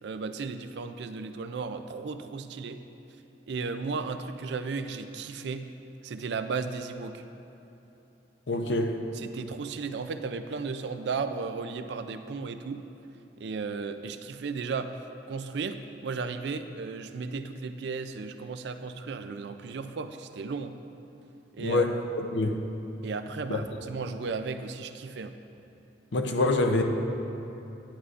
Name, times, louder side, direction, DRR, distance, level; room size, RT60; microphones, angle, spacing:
voice 1, 0.0-2.8 3.5-5.7 6.0-7.2 9.1-12.8 13.4-15.0 15.3-20.8 21.5-21.9 23.0-25.4, right 4 dB, 70° right, 9 dB, 0.4 m, -35 dB
voice 2, 8.5-9.0 21.6-22.6 23.5-23.6 26.1-26.8, left 2 dB, 85° left, 4 dB, 0.6 m, -26 dB
10.0 x 9.4 x 2.5 m, 2.9 s
head